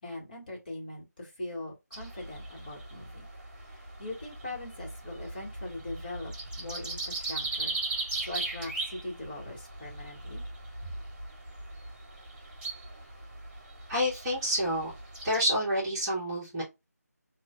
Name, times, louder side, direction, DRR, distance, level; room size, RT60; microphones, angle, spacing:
voice 1, 0.0-3.2 3.7-10.4, left 2 dB, 30° left, -3 dB, 1.8 m, -41 dB
sound 1, 1.9-15.5, right 2 dB, 35° right, 1.5 m, -39 dB
voice 2, 13.9-14.9 15.2-16.6, equal, 15° right, -8 dB, 1.6 m, -28 dB
6.0 x 2.7 x 2.3 m, 0.22 s
figure-of-eight pair, 160°, 9 cm